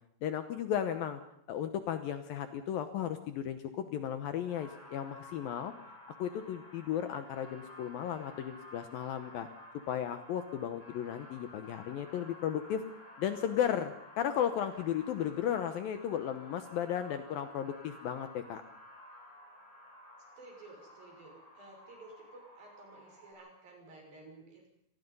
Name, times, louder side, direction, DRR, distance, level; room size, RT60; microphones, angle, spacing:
voice 1, 0.2-1.2 1.5-5.7 6.2-9.5 9.9-12.8 13.2-18.6, left 9 dB, 70° left, 9 dB, 2.5 m, -35 dB
sound 1, 4.5-23.3, left 1 dB, 10° left, 7.0 m, -54 dB
voice 2, 20.4-24.7, right 2 dB, 55° right, 1 dB, 7.7 m, -53 dB
26.5 x 19.5 x 5.5 m, 0.72 s
omnidirectional pair, 4.9 m